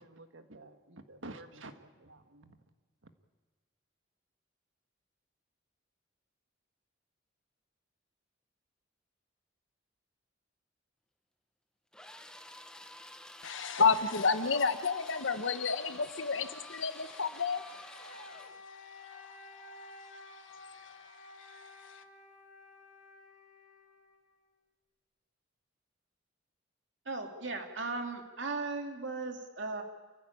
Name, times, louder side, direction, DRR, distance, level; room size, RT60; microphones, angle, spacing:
voice 1, 0.0-2.6, right 2 dB, 85° right, 8 dB, 1.6 m, -50 dB
sound 1, 11.9-18.6, left 1 dB, 5° left, 0.9 m, -50 dB
voice 2, 13.4-22.0, left 5 dB, 75° left, 10 dB, 1.3 m, -33 dB
Wind instrument woodwind instrument, 17.0-24.6, left 2 dB, 50° left, 4.0 m, -53 dB
voice 3, 27.1-29.8, right 3 dB, 65° right, 4 dB, 2.5 m, -37 dB
28.0 x 15.0 x 8.7 m, 1.3 s
head